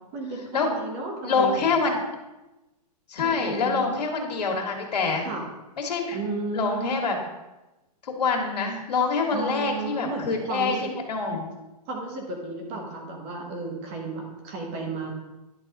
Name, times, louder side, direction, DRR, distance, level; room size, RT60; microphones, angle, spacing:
voice 1, 0.1-1.8 3.2-3.9 5.2-5.4 6.1-7.2 9.3-10.9 11.9-15.1, right 3 dB, 20° right, 1 dB, 1.0 m, -33 dB
voice 2, 1.2-2.0 3.1-5.3 5.8-6.2 6.5-7.1 8.2-11.5, left 4 dB, 80° left, 1 dB, 1.9 m, -25 dB
10.5 x 4.8 x 3.7 m, 1.0 s
hypercardioid pair, 175°, 21 cm